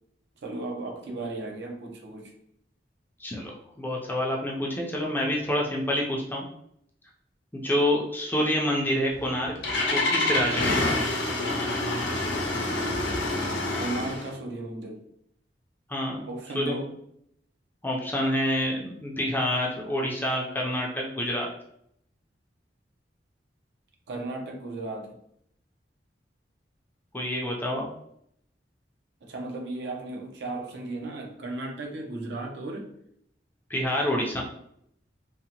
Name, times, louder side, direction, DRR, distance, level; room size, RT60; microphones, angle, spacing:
voice 1, 0.4-2.3 13.7-15.0 16.3-16.9 24.1-25.2 29.2-32.9, right 2 dB, 70° right, 0 dB, 0.6 m, -35 dB
voice 2, 3.2-3.5 3.8-6.4 7.5-9.5 9.9-10.8 15.9-16.2 16.5-16.8 17.8-21.5 27.1-27.9 33.7-34.4, left 1 dB, 10° left, -2 dB, 0.4 m, -27 dB
Engine starting, 9.1-14.3, left 2 dB, 85° left, 0.6 m, -27 dB
2.7 x 2.1 x 2.8 m, 0.73 s
head